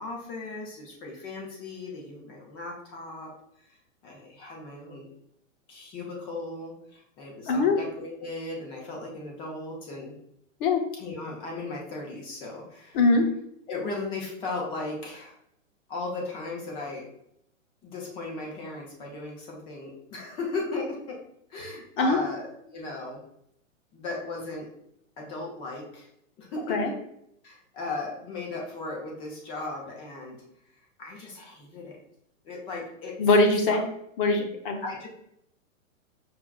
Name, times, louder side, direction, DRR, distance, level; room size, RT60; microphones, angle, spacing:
voice 1, 0.0-3.3 3.7-3.8 4.0-5.1 5.7-10.1 11.0-13.0 13.7-15.4 15.9-17.1 17.8-21.2 21.5-23.2 23.9-24.7 25.2-26.1 26.4-26.9 27.4-30.4 31.0-32.0 32.4-33.2 33.7-33.8 34.8-35.1, left 3 dB, 15° left, -1 dB, 0.4 m, -36 dB
voice 2, 7.5-7.8 10.6-10.8 12.9-13.2 22.0-22.2 26.7-26.9 33.2-33.8 34.2-34.8, left 3 dB, 40° left, 4 dB, 0.8 m, -22 dB
5.8 x 2.3 x 2.3 m, 0.74 s
hypercardioid pair, 140°, 40 cm